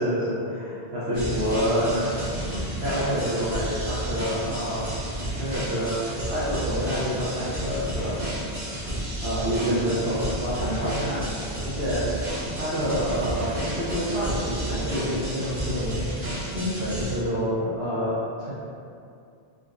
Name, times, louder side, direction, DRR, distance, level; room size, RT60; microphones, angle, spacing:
voice 1, 0.0-2.1 2.8-4.9 5.3-8.2 9.2-11.3 11.6-12.1 12.5-16.0 16.5-18.5, equal, 75° right, -10 dB, 0.9 m, -27 dB
sound 1, 1.1-17.2, right 1 dB, 35° right, 0.8 m, -31 dB
3.8 x 2.1 x 2.4 m, 2.4 s
omnidirectional pair, 1.1 m